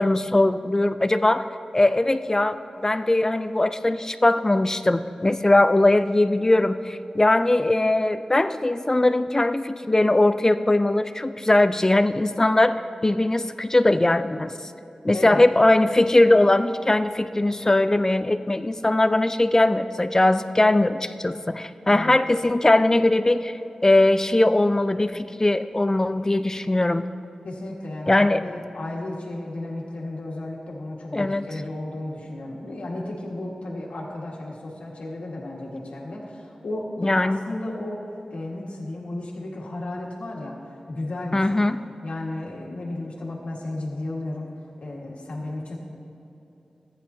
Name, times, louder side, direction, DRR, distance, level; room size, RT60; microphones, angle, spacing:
voice 1, 0.0-1.5 1.7-12.8 13.0-14.5 15.0-27.0 28.1-28.4 31.1-31.4 37.0-37.4 41.3-41.8, left 2 dB, 25° left, 11 dB, 0.4 m, -20 dB
voice 2, 27.4-41.6 42.0-44.5 44.8-45.8, left 1 dB, 85° left, -2 dB, 1.6 m, -34 dB
14.5 x 9.7 x 2.7 m, 2.9 s
wide cardioid pair, 60°, 2 cm